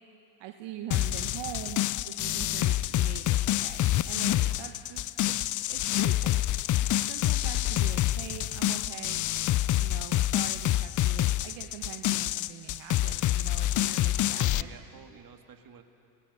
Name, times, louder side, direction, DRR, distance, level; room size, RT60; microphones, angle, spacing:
voice 1, 0.4-5.4 5.7-6.4 6.8-9.2 9.8-14.0 14.3-14.7, right 11 dB, 65° right, 5 dB, 1.2 m, -43 dB
sound 1, 0.9-14.6, left 14 dB, 40° left, 0.5 m, -27 dB
voice 2, 13.8-15.8, right 7 dB, 45° right, 6 dB, 2.0 m, -48 dB
26.5 x 20.0 x 5.6 m, 2.6 s
hypercardioid pair, 60°, 46 cm